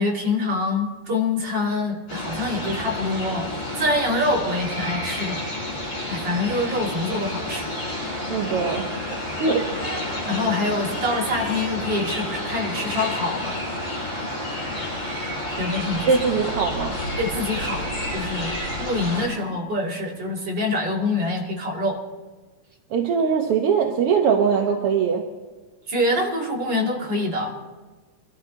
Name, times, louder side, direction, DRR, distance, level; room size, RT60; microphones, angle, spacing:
voice 1, 0.0-3.5 3.8-5.5 5.7-7.7 10.3-13.6 15.6-16.1 17.2-17.8 18.1-22.0 25.9-27.5, left 2 dB, 40° right, -2 dB, 2.9 m, -25 dB
sound 1, 2.1-19.3, left 1 dB, 50° left, 6.2 m, -30 dB
voice 2, 8.3-8.9 9.4-9.7 15.9-17.0 22.9-25.2, right 6 dB, 60° right, 2 dB, 1.6 m, -21 dB
23.0 x 13.5 x 3.9 m, 1.3 s
omnidirectional pair, 3.5 m